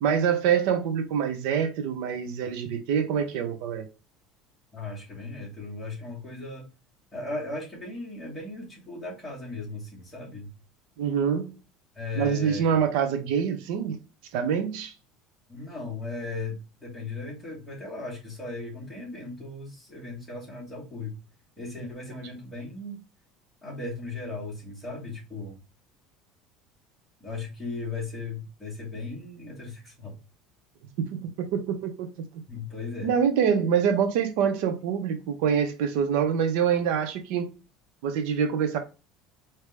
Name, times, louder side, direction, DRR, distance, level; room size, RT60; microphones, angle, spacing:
voice 1, 0.0-3.9 11.0-11.5 12.2-14.0 14.3-14.9 31.1-32.1 33.0-37.5 38.0-38.8, right 7 dB, 70° right, 0.9 m, -25 dB
voice 2, 4.7-6.7 7.1-10.5 11.9-12.8 15.5-21.2 21.6-23.0 23.6-25.6 27.2-30.2 32.5-33.1, left 3 dB, 5° left, 2.4 m, -37 dB
5.0 x 3.0 x 3.4 m
cardioid pair, 170°, 0 cm